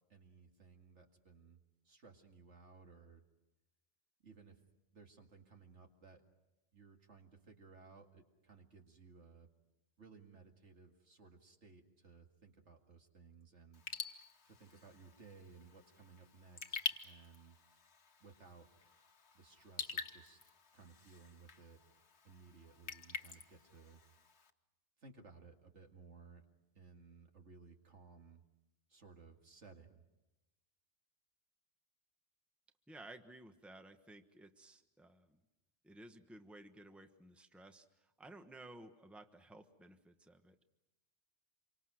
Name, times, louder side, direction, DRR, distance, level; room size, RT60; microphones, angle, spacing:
voice 1, 0.1-1.6 1.8-3.3 4.2-4.6 4.9-6.2 6.7-9.5 10.0-13.8 14.5-17.6 18.2-18.7 19.3-20.4 20.7-21.8 22.2-24.0 25.0-26.4 26.7-28.4 28.9-30.0, right 4 dB, 80° right, 3 dB, 2.4 m, -59 dB
Raindrop / Drip, 13.7-24.5, left 5 dB, 65° left, 1.5 m, -47 dB
voice 2, 32.9-35.4 35.8-40.6, right 1 dB, ahead, 7 dB, 1.1 m, -56 dB
28.0 x 24.5 x 6.4 m, 1.0 s
omnidirectional pair, 1.2 m